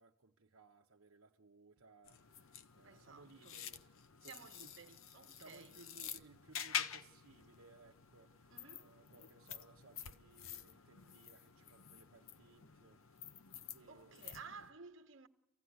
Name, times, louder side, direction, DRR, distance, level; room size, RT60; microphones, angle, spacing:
voice 1, 0.0-4.7 5.3-13.2 13.7-14.6, right 3 dB, 80° right, 0.9 m, -63 dB
sound 1, 2.0-14.7, left 8 dB, 75° left, 0.8 m, -48 dB
voice 2, 2.8-3.6 4.2-5.8 8.5-8.9 13.9-15.3, right 5 dB, 65° right, 1.1 m, -55 dB
24.5 x 16.0 x 9.5 m
head